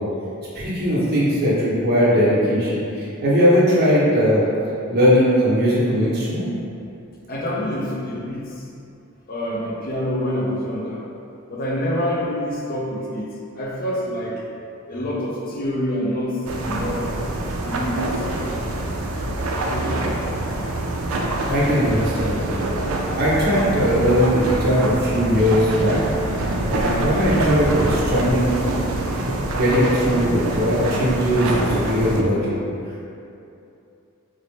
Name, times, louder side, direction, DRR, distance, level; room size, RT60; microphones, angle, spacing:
voice 1, 0.5-4.4 4.9-6.5 21.5-22.6 23.1-26.0 26.3-28.8 29.6-32.6, equal, 50° right, -7 dB, 0.8 m, -19 dB
voice 2, 7.3-8.6 9.3-11.0 11.5-13.3 13.5-14.4 14.9-17.1 17.6-19.0 19.3-20.1, equal, 45° left, -3 dB, 0.5 m, -27 dB
sound 1, 16.5-32.2, right 2 dB, 75° right, 0.4 m, -25 dB
3.9 x 2.0 x 3.3 m, 2.7 s
head